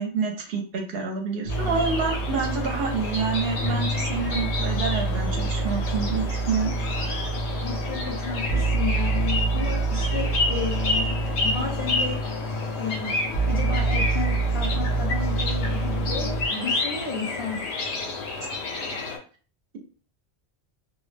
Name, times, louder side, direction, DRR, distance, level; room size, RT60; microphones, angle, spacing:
voice 1, 0.0-6.7 18.4-18.5 18.8-19.0, right 5 dB, 65° right, 2 dB, 0.8 m, -28 dB
sound 1, 1.5-19.2, left 3 dB, 90° left, 0.9 m, -31 dB
sound 2, 1.5-16.5, right 3 dB, 60° left, 0.8 m, -27 dB
voice 2, 7.6-12.2 12.8-13.2 13.5-17.6, left 4 dB, 35° left, -3 dB, 0.6 m, -32 dB
2.3 x 2.0 x 3.2 m, 0.40 s
omnidirectional pair, 1.1 m